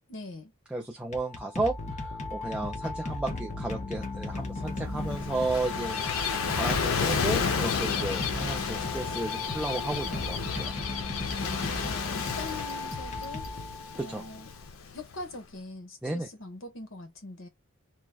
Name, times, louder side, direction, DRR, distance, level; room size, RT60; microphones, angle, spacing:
voice 1, 0.1-0.5 4.9-5.3 5.7-5.9 11.4-13.5 13.9-14.5 14.9-17.5, left 2 dB, 70° left, 1.0 m, -42 dB
voice 2, 0.7-10.7 14.0-14.2 16.0-16.3, right 2 dB, 5° right, 0.4 m, -33 dB
sound 1, 1.0-14.2, left 2 dB, 35° left, 0.6 m, -36 dB
Gull seagull / Waves surf, 4.7-15.3, left 6 dB, 90° left, 0.6 m, -32 dB
2.8 x 2.2 x 2.2 m
head